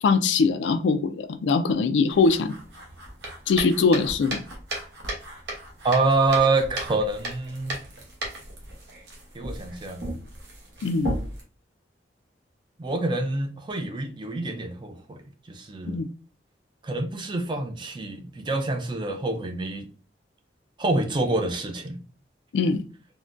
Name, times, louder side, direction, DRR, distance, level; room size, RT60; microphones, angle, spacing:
voice 1, 0.0-2.5 3.5-4.4 10.8-11.1 15.9-16.1 22.5-22.8, left 4 dB, 80° left, 0.3 m, -22 dB
sound 1, 2.1-11.4, right 1 dB, 70° right, 0.9 m, -36 dB
voice 2, 5.8-7.8 9.3-10.0 12.8-16.0 16.8-19.9 20.8-22.0, right 3 dB, 25° right, 0.4 m, -26 dB
3.6 x 2.2 x 2.5 m
head